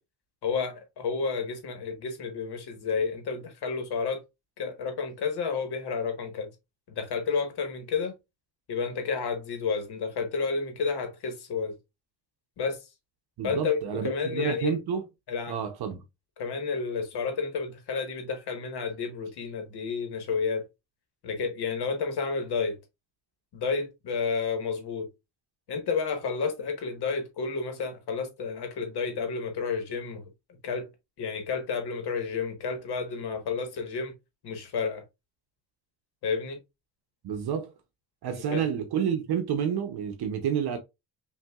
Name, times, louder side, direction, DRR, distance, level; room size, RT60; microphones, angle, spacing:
voice 1, 0.4-4.2 4.6-6.5 6.9-8.1 8.7-11.8 12.6-12.9 13.4-14.8 15.3-15.6 16.4-20.7 21.2-22.8 23.5-25.1 25.7-30.2 30.6-30.9 31.2-34.1 34.4-35.0 36.2-36.6 38.3-38.6, left 5 dB, 70° left, 1.4 m, -31 dB
voice 2, 13.4-15.0 15.5-16.0 37.2-37.7 38.2-40.8, right 8 dB, 65° right, 0.8 m, -29 dB
5.7 x 2.7 x 2.3 m
wide cardioid pair, 175°, 41 cm